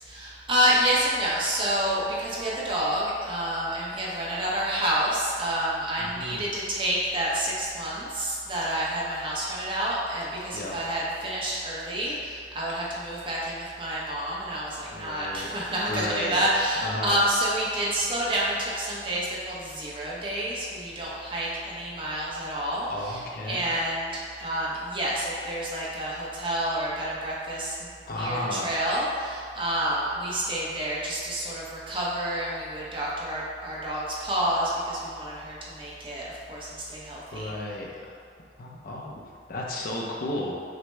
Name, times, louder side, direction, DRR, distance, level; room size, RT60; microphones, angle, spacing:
voice 1, 0.0-37.5, right 1 dB, 30° right, -6 dB, 0.8 m, -29 dB
voice 2, 6.0-6.5 10.5-10.8 14.9-16.4 16.8-17.2 22.9-23.7 28.1-28.7 37.3-38.1 38.6-39.1 39.5-40.5, left 1 dB, 55° left, -2 dB, 0.6 m, -33 dB
6.0 x 2.1 x 3.3 m, 2.3 s
head